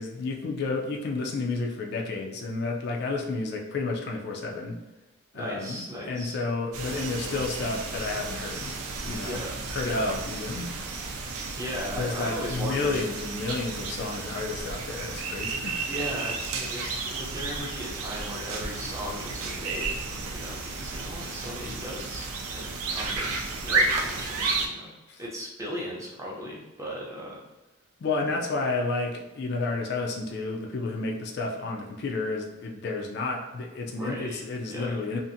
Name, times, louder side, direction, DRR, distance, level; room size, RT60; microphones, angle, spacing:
voice 1, 0.0-4.8 5.3-8.7 9.0-9.4 9.7-10.7 12.0-15.8 21.6-21.8 25.1-25.2 28.0-35.2, left 3 dB, 50° left, 0 dB, 0.3 m, -31 dB
voice 2, 5.3-6.4 9.2-10.0 11.6-13.0 15.9-19.9 20.3-24.9 25.2-27.4 33.8-34.4 34.7-35.0, equal, 15° right, -4 dB, 0.5 m, -37 dB
sound 1, 6.7-24.7, right 3 dB, 85° right, 0.4 m, -32 dB
2.6 x 2.4 x 2.5 m, 1.1 s
head